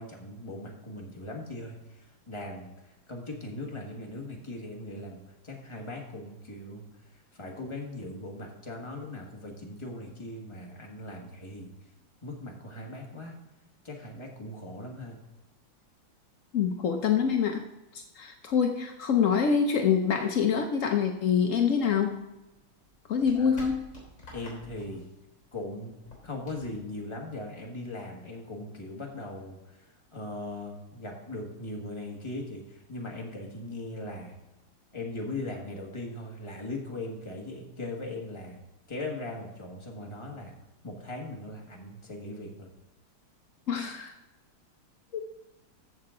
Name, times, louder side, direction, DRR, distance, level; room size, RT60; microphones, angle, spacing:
voice 1, 0.0-6.9 7.1-11.7 12.2-13.4 13.8-15.2 23.3-23.5 24.3-25.0 25.5-26.0 26.2-34.4 34.9-38.6 38.9-40.5 40.8-42.7, left 2 dB, 15° left, -1 dB, 1.4 m, -39 dB
voice 2, 16.5-17.6 17.9-22.2 23.1-23.9 43.7-44.1 45.1-45.2, left 7 dB, 80° left, 4 dB, 0.7 m, -25 dB
sound 1, 21.8-27.7, left 2 dB, 35° left, 4.1 m, -51 dB
14.0 x 6.7 x 3.8 m, 1.0 s
omnidirectional pair, 2.4 m